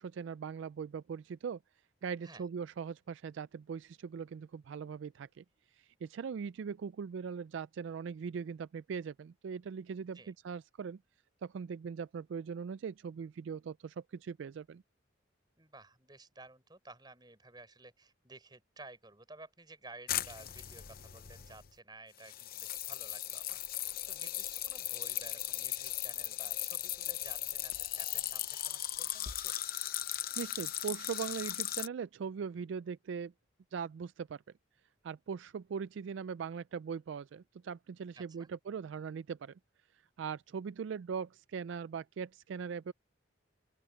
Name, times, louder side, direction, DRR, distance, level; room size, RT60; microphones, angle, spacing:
voice 1, 0.0-1.6 2.0-5.4 5.8-11.0 11.4-14.8 30.4-33.3 33.7-34.4 35.0-39.6 40.2-42.9, right 6 dB, 65° right, 0.3 m, -40 dB
voice 2, 15.6-29.5 38.1-38.5, right 2 dB, 20° right, 6.2 m, -54 dB
sound 1, 20.1-21.7 22.2-31.9, left 13 dB, 45° left, 0.8 m, -38 dB
open air
head